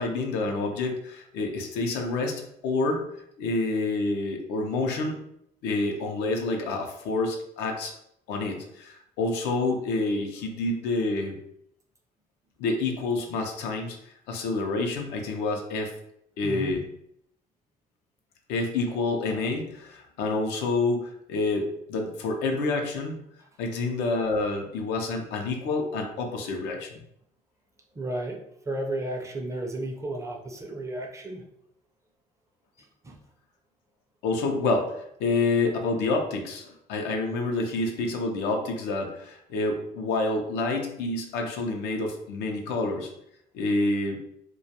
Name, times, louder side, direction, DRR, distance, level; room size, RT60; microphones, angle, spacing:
voice 1, 0.0-3.0 3.4-5.2 5.6-7.9 8.3-11.3 12.6-14.0 14.3-15.9 16.4-16.8 18.5-23.2 23.6-27.0 34.2-43.1 43.5-44.2, left 3 dB, 90° left, 3 dB, 0.5 m, -28 dB
voice 2, 16.4-16.8 27.9-28.4 28.7-31.4 33.0-33.2, right 1 dB, 20° right, 1 dB, 0.4 m, -33 dB
2.2 x 2.2 x 2.7 m, 0.75 s
cardioid pair, 110°, 17 cm